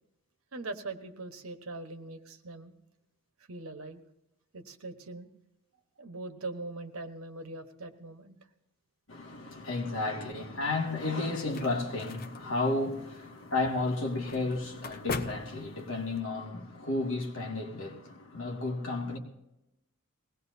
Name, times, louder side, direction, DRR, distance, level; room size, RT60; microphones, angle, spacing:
voice 1, 0.5-2.7 3.5-4.0 4.5-5.3 6.0-8.4, right 2 dB, 80° right, 1.3 m, -41 dB
voice 2, 9.1-19.2, left 2 dB, 70° left, 2.3 m, -32 dB
sound 1, 10.9-16.2, left 3 dB, 45° left, 0.7 m, -42 dB
21.5 x 18.0 x 2.8 m
head